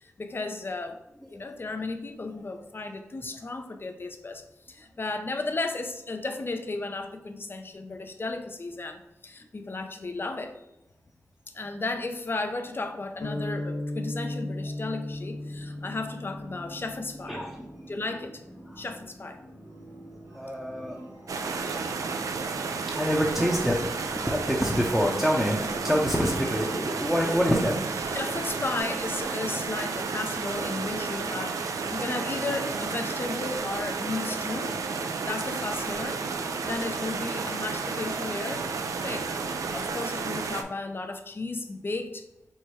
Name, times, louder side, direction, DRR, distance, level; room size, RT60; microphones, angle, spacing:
voice 1, 0.0-1.0 1.3-10.7 11.5-17.4 17.9-18.4 18.8-19.4 28.0-34.7 35.2-36.2 36.5-38.7 39.0-42.2, left 3 dB, 40° left, 6 dB, 0.5 m, -34 dB
sound 1, 13.2-17.5, left 1 dB, 75° left, 0.8 m, -35 dB
sound 2, 15.1-28.8, right 1 dB, 65° right, 1.2 m, -48 dB
voice 2, 17.3-17.8 20.3-21.1 21.7-21.8 22.6-22.7 22.9-27.8 36.5-36.6, equal, ahead, -3 dB, 0.7 m, -27 dB
sound 3, 21.3-40.6, right 4 dB, 85° right, 0.4 m, -32 dB
4.3 x 2.2 x 4.6 m, 0.90 s
cardioid pair, 55°, 6 cm